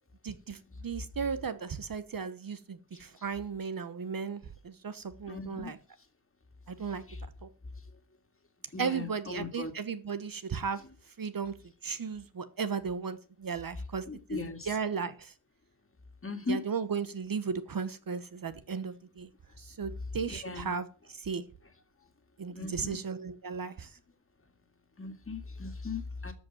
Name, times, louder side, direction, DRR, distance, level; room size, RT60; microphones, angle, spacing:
voice 1, 0.2-5.8 6.7-7.0 7.4-7.5 8.8-10.8 11.2-11.6 11.8-14.0 14.3-15.3 16.5-19.3 19.6-21.4 22.4-24.0, right 6 dB, 45° right, 1.1 m, -35 dB
voice 2, 5.3-5.7 7.1-7.2 8.7-9.7 14.1-14.7 16.2-16.6 20.3-20.7 22.5-23.0 25.0-26.3, left 3 dB, 25° left, 2.2 m, -38 dB
13.5 x 5.4 x 9.1 m
wide cardioid pair, 110°, 48 cm